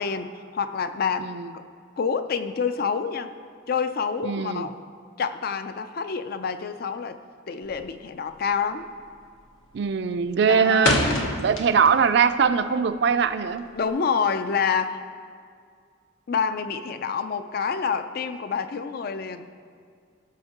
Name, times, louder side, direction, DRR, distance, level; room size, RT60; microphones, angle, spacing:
voice 1, 0.0-1.6 2.0-3.3 3.7-4.7 5.2-7.2 7.5-8.9 10.5-11.1 13.7-15.0 16.3-19.5, left 6 dB, 50° left, 10 dB, 0.4 m, -27 dB
voice 2, 4.2-4.7 9.7-11.0 11.4-13.7, right 6 dB, 60° right, 11 dB, 0.4 m, -21 dB
sound 1, 7.6-8.0 8.3-8.7 9.0-9.4 9.8-12.1 12.4-13.9, left 2 dB, 85° left, 1.1 m, -27 dB
16.0 x 6.4 x 2.9 m, 2.1 s
head